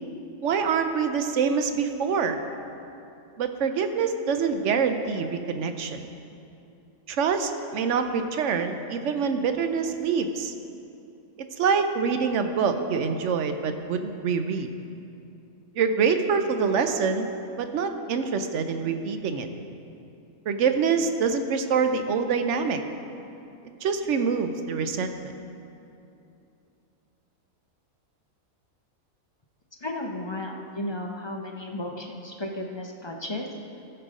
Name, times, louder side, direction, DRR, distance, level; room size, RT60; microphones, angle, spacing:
voice 1, 0.4-2.4 3.4-6.1 7.1-10.5 11.6-14.7 15.7-17.3 17.6-19.5 20.5-22.8 23.8-25.3, right 5 dB, 65° right, 7 dB, 0.9 m, -25 dB
voice 2, 29.8-33.5, left 1 dB, 30° left, 2 dB, 0.5 m, -34 dB
14.5 x 6.8 x 5.0 m, 2.7 s
omnidirectional pair, 1.5 m